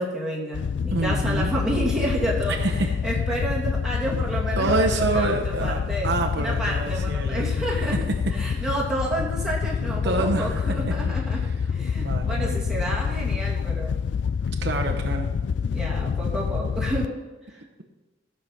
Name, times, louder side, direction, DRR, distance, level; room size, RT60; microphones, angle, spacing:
voice 1, 0.0-2.6 3.0-8.0 8.3-11.4 11.7-13.9 14.7-15.0 15.6-17.1 17.5-17.6, right 1 dB, 5° right, -5 dB, 2.6 m, -30 dB
Wind / Boat Water vehicle, 0.5-17.1, left 6 dB, 60° left, 0.3 m, -27 dB
voice 2, 0.9-1.5 2.5-2.9 4.6-7.5 8.5-8.6 10.0-10.6 12.0-12.8 14.6-15.3, right 2 dB, 60° right, 2 dB, 1.0 m, -27 dB
13.5 x 6.9 x 5.9 m, 1.2 s
head